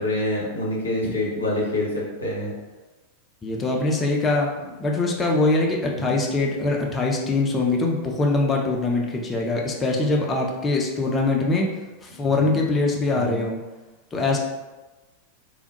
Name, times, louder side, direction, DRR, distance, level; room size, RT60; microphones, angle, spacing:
voice 1, 0.0-2.5 5.9-6.2 13.1-13.4, left 1 dB, 75° left, -4 dB, 0.8 m, -27 dB
voice 2, 3.4-4.5 4.8-11.7 12.0-13.6 14.1-14.4, left 2 dB, 20° left, 0 dB, 0.5 m, -23 dB
3.2 x 2.1 x 2.8 m, 1.2 s
figure-of-eight pair, 90°, 0 cm